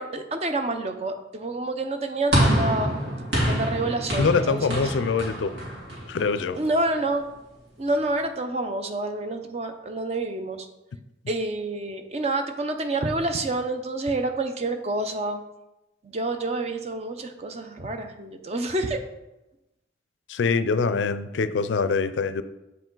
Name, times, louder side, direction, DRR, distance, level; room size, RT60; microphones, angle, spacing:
voice 1, 0.0-2.9 3.5-4.9 6.6-7.2 7.8-10.7 11.3-15.4 16.0-19.0, right 2 dB, 35° right, 6 dB, 0.6 m, -28 dB
sound 1, 2.3-6.7, right 1 dB, 75° right, 2.5 m, -26 dB
voice 2, 4.2-5.6 6.1-6.6 20.3-22.4, left 4 dB, 90° left, 12 dB, 0.4 m, -24 dB
8.1 x 4.8 x 3.8 m, 0.98 s
head